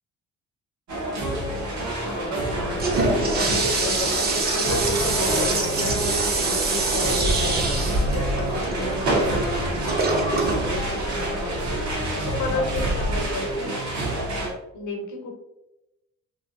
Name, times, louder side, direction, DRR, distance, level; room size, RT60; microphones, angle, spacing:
sound 1, 0.9-14.5, right 1 dB, 70° right, 1.1 m, -27 dB
Toilet flush, 2.5-11.9, right 3 dB, 30° right, 0.6 m, -26 dB
voice 1, 3.4-9.7 10.2-11.9 12.3-13.8 14.7-15.3, left 3 dB, 75° left, 2 dB, 0.8 m, -32 dB
Bass guitar, 4.8-14.4, equal, 35° left, 0.4 m, -38 dB
2.8 x 2.7 x 2.5 m, 0.93 s
cardioid pair, 90°, 30 cm